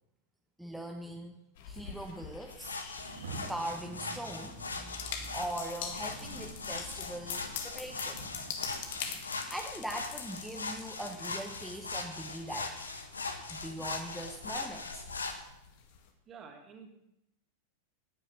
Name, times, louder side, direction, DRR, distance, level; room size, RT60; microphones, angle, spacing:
voice 1, 0.6-1.4 1.6-2.8 3.5-5.1 5.3-8.2 9.2-12.7 13.5-15.0, right 1 dB, ahead, 1 dB, 1.2 m, -41 dB
sound 1, 1.6-16.1, left 7 dB, 50° left, 2.0 m, -45 dB
sound 2, 2.5-15.3, left 3 dB, 75° left, 1.6 m, -40 dB
Rain, 2.9-12.0, right 4 dB, 70° right, 2.3 m, -51 dB
voice 2, 16.3-16.9, right 5 dB, 30° right, 2 dB, 3.1 m, -49 dB
18.0 x 9.8 x 6.1 m, 0.85 s
figure-of-eight pair, 90°, 0 cm